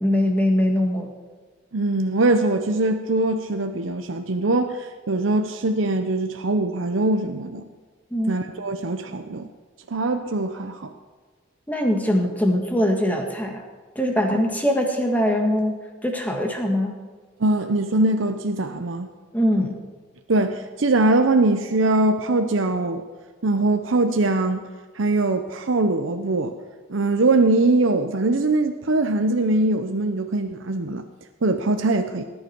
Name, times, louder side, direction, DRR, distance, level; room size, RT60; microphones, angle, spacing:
voice 1, 0.0-1.1 8.1-8.4 11.7-13.6 14.0-17.0 19.3-19.8, equal, 10° left, 2 dB, 1.7 m, -22 dB
voice 2, 1.7-7.7 8.3-9.5 9.9-10.9 14.3-14.4 17.4-19.1 20.3-23.0 23.4-24.6 24.9-26.5 26.9-31.0 31.4-32.2, right 2 dB, 85° right, 6 dB, 0.7 m, -22 dB
19.0 x 9.7 x 4.6 m, 1.4 s
head